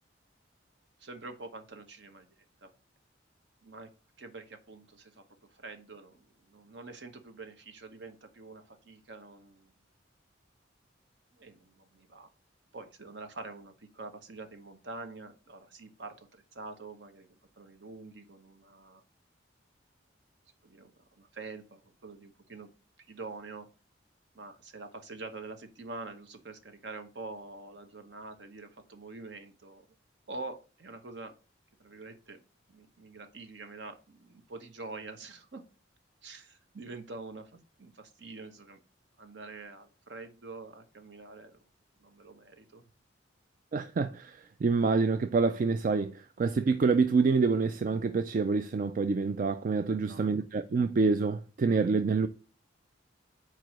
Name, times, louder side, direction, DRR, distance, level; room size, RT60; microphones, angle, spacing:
voice 1, 1.0-2.3 2.6-2.7 3.6-3.9 4.2-5.2 5.5-9.7 11.3-12.3 12.7-19.0 20.6-20.9 21.2-22.7 23.1-23.7 24.3-29.9 30.3-31.4 31.8-32.4 32.7-35.6 36.2-38.8 39.2-41.6 42.0-42.8 49.9-50.2, right 3 dB, 65° right, 1.0 m, -46 dB
voice 2, 43.7-52.3, right 4 dB, 45° right, 0.3 m, -27 dB
4.8 x 4.5 x 6.1 m
head